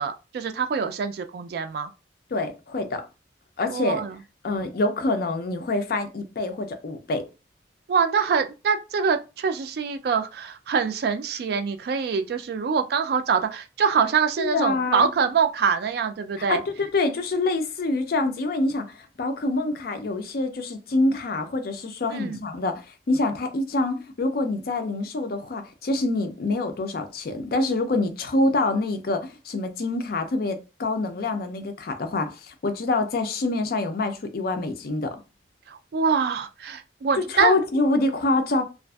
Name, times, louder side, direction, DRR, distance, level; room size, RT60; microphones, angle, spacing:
voice 1, 0.0-1.9 3.7-4.2 7.9-16.6 22.1-22.4 35.7-37.6, right 6 dB, 60° right, 0.3 m, -24 dB
voice 2, 2.3-3.0 3.6-4.0 4.4-7.2 14.4-15.1 16.5-35.2 37.2-38.6, left 2 dB, 55° left, 0.4 m, -26 dB
2.5 x 2.4 x 2.2 m
head